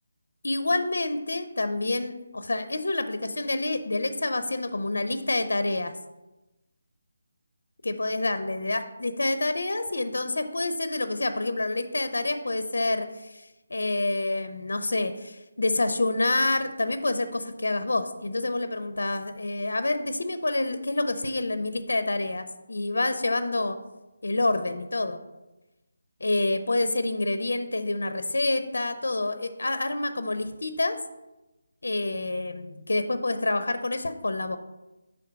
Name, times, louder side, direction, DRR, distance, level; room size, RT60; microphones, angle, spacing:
voice 1, 0.4-5.9 7.8-13.4 13.7-23.8 24.2-25.2 26.2-31.0 31.8-34.6, left 2 dB, 85° left, 10 dB, 0.5 m, -27 dB
5.8 x 3.5 x 5.0 m, 1.0 s
figure-of-eight pair, 175°, 0 cm